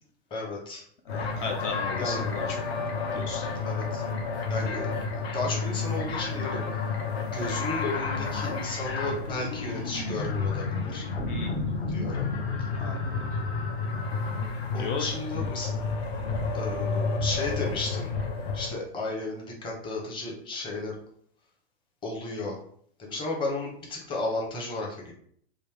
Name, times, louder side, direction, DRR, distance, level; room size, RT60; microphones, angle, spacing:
voice 1, 0.3-0.8 2.0-2.2 3.6-4.0 4.5-6.6 7.3-11.1 11.9-12.3 14.7-15.7 16.5-18.1 18.5-21.0 22.0-22.6 23.0-25.1, left 2 dB, 15° left, -2 dB, 0.7 m, -33 dB
sound 1, 1.1-18.7, left 4 dB, 65° left, 1.0 m, -30 dB
voice 2, 1.1-2.6 3.1-3.6 11.2-11.6 12.8-13.3 14.8-15.1, left 4 dB, 50° left, 4 dB, 0.5 m, -36 dB
3.2 x 2.6 x 3.4 m, 0.62 s
hypercardioid pair, 145°, 33 cm